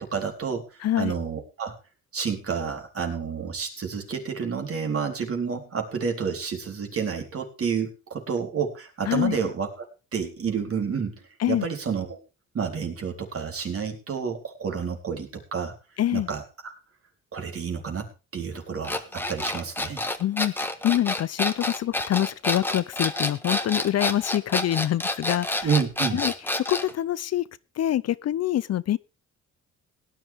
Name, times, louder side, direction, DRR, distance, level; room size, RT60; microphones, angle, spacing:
voice 1, 0.0-1.7 2.1-9.9 10.1-12.2 12.5-15.7 16.1-16.7 17.3-20.0 25.6-26.2, right 6 dB, 50° right, 4.1 m, -30 dB
voice 2, 0.8-1.1 9.1-9.4 11.4-11.7 16.0-16.3 20.2-25.7 26.1-27.5 27.8-29.0, left 12 dB, 55° left, 0.6 m, -25 dB
sound 1, 18.8-26.9, left 1 dB, 5° left, 1.5 m, -28 dB
17.5 x 10.5 x 3.6 m
cardioid pair, 90°, 30 cm